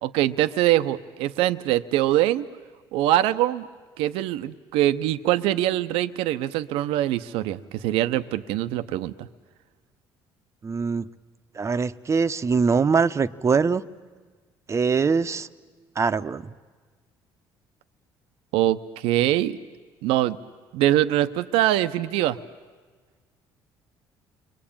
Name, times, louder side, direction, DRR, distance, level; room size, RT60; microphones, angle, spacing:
voice 1, 0.0-2.5 2.9-3.6 4.0-9.3 18.5-19.6 20.0-20.4 20.7-22.4, right 14 dB, 85° right, 12 dB, 0.8 m, -23 dB
voice 2, 10.6-11.1 11.5-13.8 14.7-15.5 16.0-16.5, right 5 dB, 30° right, 12 dB, 0.9 m, -23 dB
29.5 x 23.0 x 8.8 m, 1.5 s
supercardioid pair, 85°, 9 cm